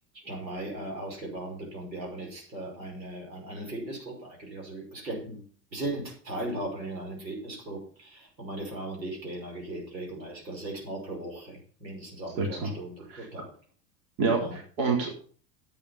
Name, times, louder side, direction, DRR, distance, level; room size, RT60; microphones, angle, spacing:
voice 1, 0.1-5.4 5.7-13.5 14.4-14.6, right 1 dB, 85° right, 0 dB, 5.5 m, -38 dB
voice 2, 12.4-12.7 13.1-13.3 14.2-15.2, right 4 dB, 60° right, 0 dB, 4.0 m, -28 dB
11.0 x 8.6 x 5.8 m, 0.42 s
hypercardioid pair, 85°, 50 cm